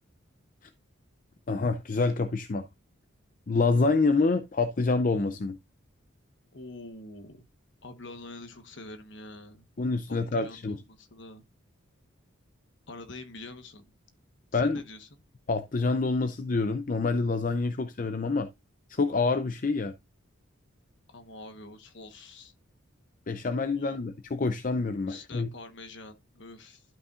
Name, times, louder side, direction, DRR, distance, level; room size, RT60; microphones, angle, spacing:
voice 1, 1.5-2.7 3.5-5.6 9.8-10.8 14.5-14.8 15.5-18.5 18.9-19.9 23.3-25.5, left 3 dB, 40° left, 0.5 m, -27 dB
voice 2, 6.5-7.4 7.8-9.7 10.1-11.4 12.9-13.9 14.5-15.1 21.1-22.5 23.8-24.0 25.1-26.8, left 2 dB, 55° left, 1.2 m, -45 dB
12.0 x 5.6 x 2.4 m
head